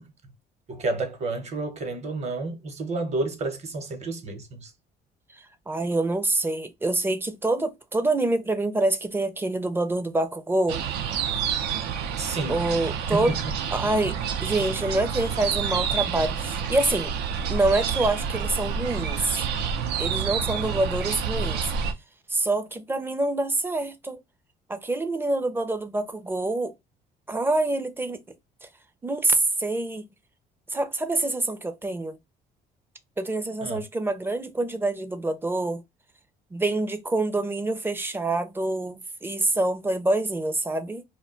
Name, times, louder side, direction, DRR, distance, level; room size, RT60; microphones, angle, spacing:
voice 1, 0.7-4.7 12.2-13.4 33.6-33.8, right 3 dB, 40° right, 0.9 m, -31 dB
voice 2, 5.4-10.8 12.5-13.3 13.7-17.1 17.5-19.5 20.0-21.7 22.3-24.2 24.7-26.7 27.3-28.2 29.0-30.1 30.7-32.2 33.2-35.8 36.5-41.0, right 2 dB, 15° right, 0.4 m, -26 dB
sound 1, 10.7-21.9, right 7 dB, 75° right, 0.5 m, -28 dB
2.2 x 2.2 x 3.7 m
cardioid pair, 110°, 17 cm